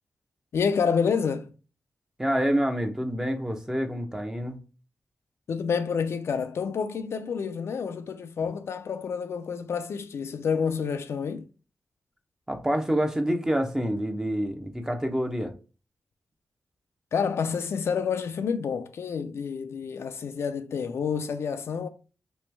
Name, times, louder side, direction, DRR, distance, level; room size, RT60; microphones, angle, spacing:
voice 1, 0.5-1.5 5.5-11.4 17.1-21.9, left 6 dB, 75° left, 0.4 m, -28 dB
voice 2, 2.2-4.6 12.5-15.5, equal, 15° right, 0.7 m, -27 dB
3.1 x 3.0 x 3.2 m
cardioid pair, 70°, 4 cm